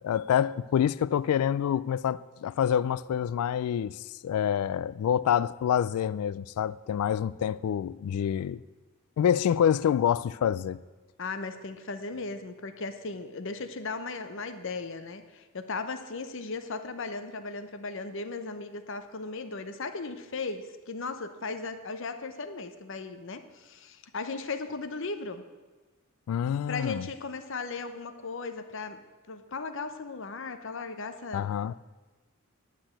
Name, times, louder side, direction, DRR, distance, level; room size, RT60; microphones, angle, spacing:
voice 1, 0.0-8.6 9.2-10.8 26.3-27.1 31.3-31.7, left 9 dB, 85° left, 0.3 m, -27 dB
voice 2, 11.2-25.4 26.7-31.5, left 3 dB, 60° left, 0.8 m, -37 dB
10.0 x 6.0 x 8.8 m
head